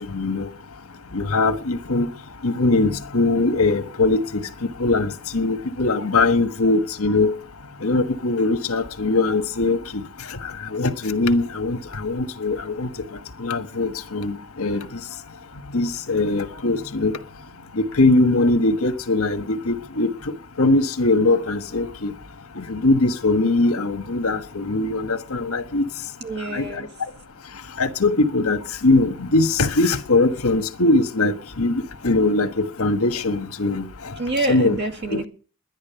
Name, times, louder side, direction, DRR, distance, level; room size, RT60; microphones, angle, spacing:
voice 1, 0.1-0.5 1.1-2.1 2.4-4.4 4.8-7.4 7.8-10.0 10.7-12.9 13.4-14.8 15.7-17.2 17.7-20.1 20.6-22.1 22.6-25.8 26.5-26.7 27.8-33.9 34.5-34.8 35.1-35.2, left 2 dB, 75° left, 1.4 m, -21 dB
voice 2, 26.2-26.9 34.2-35.3, right 2 dB, 50° right, 2.3 m, -27 dB
11.0 x 11.0 x 6.9 m
head